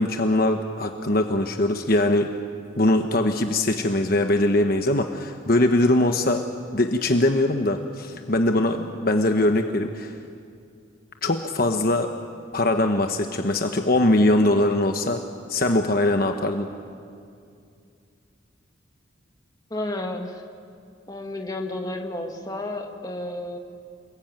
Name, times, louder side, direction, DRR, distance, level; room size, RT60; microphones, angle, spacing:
voice 1, 0.0-2.3 2.8-6.4 6.7-10.1 11.2-12.1 12.5-15.2 15.5-16.7, left 1 dB, 50° left, 5 dB, 1.2 m, -21 dB
voice 2, 19.7-20.3 21.1-23.6, left 1 dB, 20° left, 3 dB, 2.0 m, -31 dB
28.5 x 21.0 x 9.1 m, 2.4 s
head